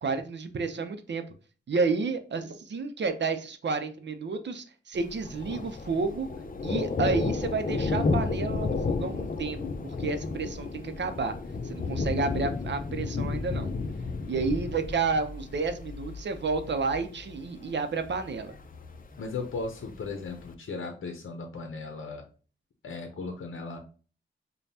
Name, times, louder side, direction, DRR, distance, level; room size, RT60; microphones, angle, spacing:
voice 1, 0.0-1.2 1.7-6.3 6.6-9.6 9.8-11.3 11.6-13.7 14.3-18.5, right 4 dB, 60° right, 8 dB, 0.6 m, -30 dB
Thunder, 5.0-20.5, left 4 dB, 45° left, 0.6 m, -33 dB
voice 2, 19.2-22.3 22.8-23.8, left 3 dB, 80° left, 3 dB, 0.7 m, -36 dB
5.2 x 2.3 x 2.7 m, 0.38 s
cardioid pair, 70°, 20 cm